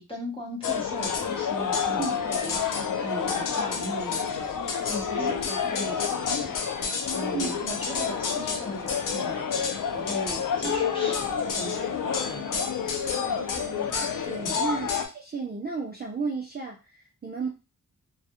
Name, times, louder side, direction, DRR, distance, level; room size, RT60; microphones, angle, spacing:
voice 1, 0.0-4.5 4.8-6.7 7.1-9.7 9.9-12.5 14.4-14.6, right 1 dB, 15° left, -2 dB, 0.8 m, -38 dB
sound 1, 0.6-15.1, left 6 dB, 85° left, 0.5 m, -28 dB
voice 2, 5.2-5.8 7.3-7.8 10.6-11.2 13.1-17.5, right 4 dB, 30° right, 0 dB, 0.4 m, -35 dB
2.3 x 2.0 x 2.8 m, 0.29 s
wide cardioid pair, 140°, 32 cm